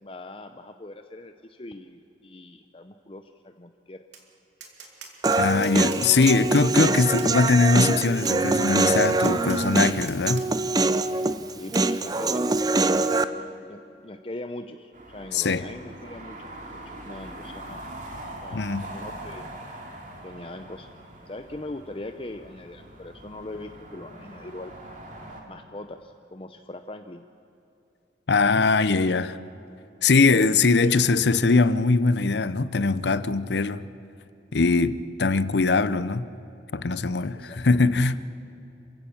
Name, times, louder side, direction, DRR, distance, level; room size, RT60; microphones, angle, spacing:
voice 1, 0.0-4.0 11.5-17.8 18.4-19.5 20.2-20.9 21.3-24.7 25.5-27.3 30.3-31.0 37.3-37.8, left 2 dB, 30° left, 0.7 m, -41 dB
Tap, 4.1-4.3 4.6-6.7 7.2-7.3 8.3-8.4 9.2-10.5 10.9-11.0 11.7-11.9, right 6 dB, 80° right, 2.9 m, -43 dB
Human voice, 5.2-13.2, right 3 dB, 20° right, 0.5 m, -24 dB
voice 2, 5.4-10.5 15.3-15.6 18.5-18.8 28.3-29.4 30.0-33.9 34.5-36.3 36.7-38.2, left 3 dB, 75° left, 0.7 m, -21 dB
sound 1, 14.9-25.4, right 1 dB, 45° right, 2.9 m, -42 dB
27.5 x 16.0 x 7.2 m
head